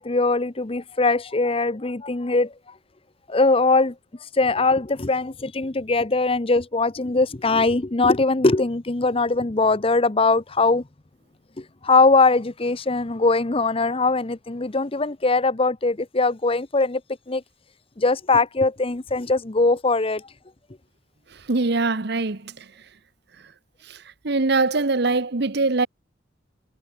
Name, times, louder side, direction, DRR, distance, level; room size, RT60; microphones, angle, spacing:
voice 1, 0.0-2.5 3.3-3.9 4.3-10.8 11.6-17.0 17.3-17.4 18.0-20.3, left 3 dB, 30° left, 0.8 m, -21 dB
voice 2, 21.5-22.4 24.2-25.9, right 3 dB, 55° right, 1.0 m, -22 dB
head